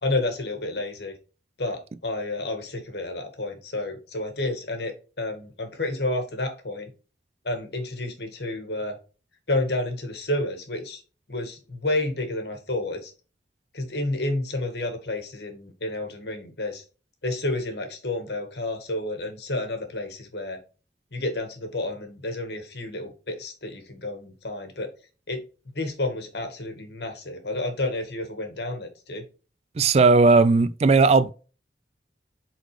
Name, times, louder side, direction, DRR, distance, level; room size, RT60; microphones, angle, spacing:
voice 1, 0.0-1.1 1.6-6.9 7.4-9.0 9.5-11.0 11.3-13.1 13.7-16.8 17.2-20.6 21.1-24.9 25.3-25.4 25.7-29.2, left 2 dB, 65° left, 1.7 m, -30 dB
voice 2, 29.8-31.3, right 4 dB, 35° right, 0.3 m, -17 dB
7.9 x 4.0 x 3.2 m
head